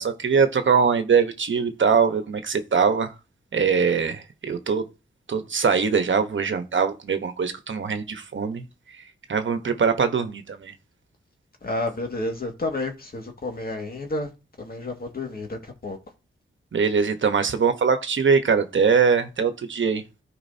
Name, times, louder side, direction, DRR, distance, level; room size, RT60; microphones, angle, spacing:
voice 1, 0.0-3.1 3.5-4.8 5.3-8.6 9.3-10.7 16.7-20.0, right 5 dB, 65° right, 1.1 m, -22 dB
voice 2, 11.6-14.3 14.6-16.0, left 2 dB, 45° left, 2.0 m, -30 dB
13.5 x 4.8 x 2.8 m
cardioid pair, 65°, 21 cm